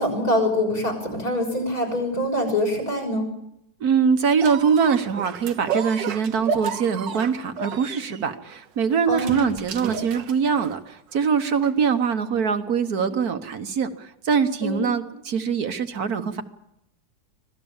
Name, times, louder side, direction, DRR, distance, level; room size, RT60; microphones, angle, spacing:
voice 1, 0.0-3.3 9.1-9.5 14.6-14.8, left 1 dB, 55° left, 4 dB, 7.1 m, -24 dB
voice 2, 3.8-16.4, right 6 dB, 60° right, 9 dB, 1.6 m, -23 dB
sound 1, 4.4-10.9 11.6-11.7, right 6 dB, 85° right, 1.8 m, -32 dB
25.5 x 18.0 x 7.2 m, 0.82 s
omnidirectional pair, 1.9 m